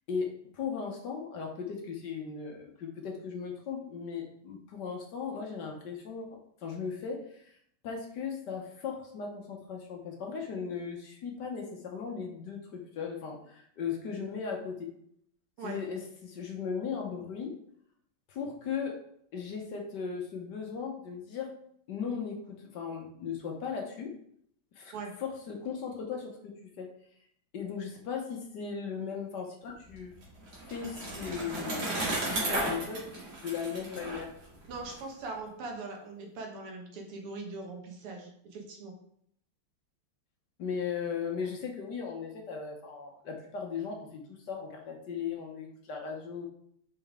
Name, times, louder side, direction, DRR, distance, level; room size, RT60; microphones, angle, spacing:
voice 1, 0.1-6.3 6.6-7.6 7.8-14.9 15.6-17.5 18.3-18.9 19.3-21.5 21.9-24.1 24.8-24.9 25.2-26.9 27.5-30.1 30.7-33.0 33.4-34.3 40.6-46.5, left 6 dB, 60° left, 1 dB, 1.4 m, -37 dB
Bicycle, 29.9-35.0, right 2 dB, 65° right, 2.8 m, -34 dB
voice 2, 34.7-38.9, right 3 dB, 85° right, 1 dB, 2.2 m, -41 dB
5.5 x 5.2 x 3.6 m, 0.68 s
omnidirectional pair, 2.4 m